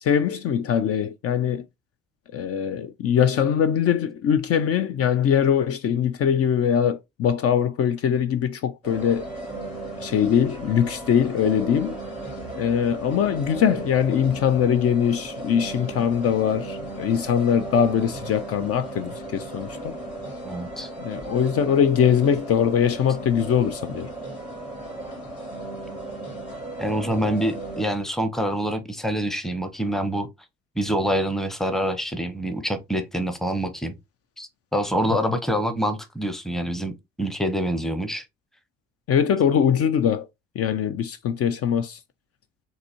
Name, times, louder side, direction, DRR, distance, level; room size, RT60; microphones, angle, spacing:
voice 1, 0.0-1.7 2.3-9.2 10.0-12.0 12.6-19.9 21.0-24.1 39.1-40.3 40.6-42.0, left 8 dB, 50° left, 0.5 m, -22 dB
sound 1, 8.8-27.8, right 2 dB, 75° left, 2.6 m, -36 dB
voice 2, 20.4-20.9 26.8-30.3 30.8-33.9 34.4-38.2, equal, ahead, 0.7 m, -26 dB
4.0 x 2.7 x 2.8 m
hypercardioid pair, 55°, 31 cm